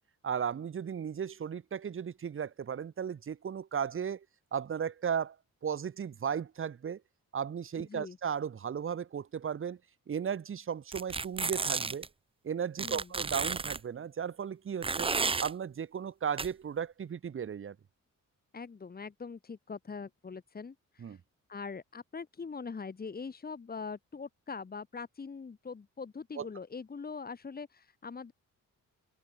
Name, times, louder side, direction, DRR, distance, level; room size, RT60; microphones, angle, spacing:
voice 1, 0.2-4.2 4.5-5.3 5.6-7.0 7.3-9.8 10.1-12.1 12.4-17.7 21.0-21.2 26.4-26.5, right 7 dB, 40° right, 1.5 m, -35 dB
voice 2, 7.8-8.2 12.8-13.1 18.5-21.2 21.5-28.3, left 5 dB, 30° left, 3.0 m, -42 dB
sound 1, 10.9-12.1 12.8-13.8 14.8-15.5 16.4-16.5, right 4 dB, 15° right, 0.6 m, -32 dB
wide cardioid pair, 165°, 32 cm